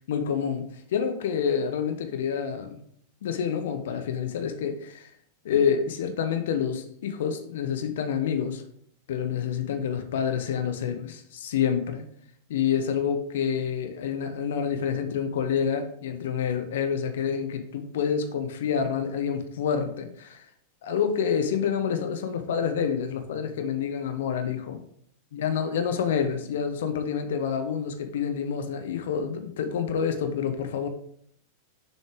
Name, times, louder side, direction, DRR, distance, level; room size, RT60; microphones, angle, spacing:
voice 1, 0.1-2.8 3.2-5.1 5.4-8.6 9.1-12.1 12.5-20.5 20.8-24.8 25.3-30.9, left 7 dB, 60° left, 7 dB, 0.7 m, -28 dB
6.7 x 4.1 x 3.4 m, 0.68 s
figure-of-eight pair, 90°, 0 cm